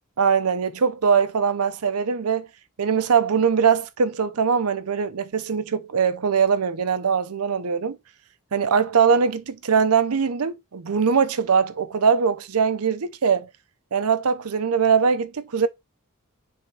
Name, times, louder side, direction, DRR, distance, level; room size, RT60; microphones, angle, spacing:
voice 1, 0.2-2.5 2.8-8.0 8.5-13.5 13.9-15.7, right 6 dB, 85° right, 0.6 m, -21 dB
10.0 x 3.5 x 2.8 m
head